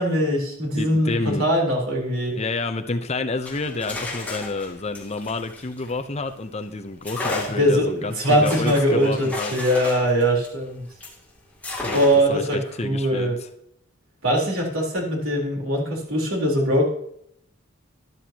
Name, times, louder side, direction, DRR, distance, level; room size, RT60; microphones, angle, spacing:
voice 1, 0.0-2.4 7.6-10.8 11.9-13.4 14.2-16.8, equal, 85° right, -1 dB, 3.9 m, -21 dB
voice 2, 0.7-1.4 2.3-9.5 11.8-12.0 12.3-13.3, left 3 dB, 30° left, 8 dB, 0.8 m, -29 dB
sound 1, 3.4-6.4 7.0-11.2 11.6-12.4, left 2 dB, 10° left, 2.5 m, -34 dB
12.5 x 12.0 x 2.9 m, 0.72 s
head